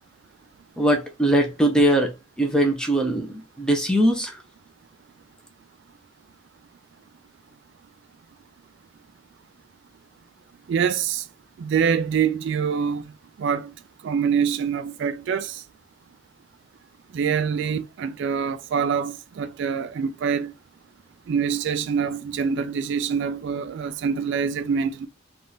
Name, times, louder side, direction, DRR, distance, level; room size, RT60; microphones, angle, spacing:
voice 1, 0.8-4.4, right 1 dB, 5° left, 0.5 m, -21 dB
voice 2, 10.7-11.2 11.6-13.0 13.4-13.7 14.0-15.6 17.1-20.5 21.3-25.1, right 6 dB, 60° right, 0.3 m, -25 dB
3.5 x 2.4 x 2.6 m
head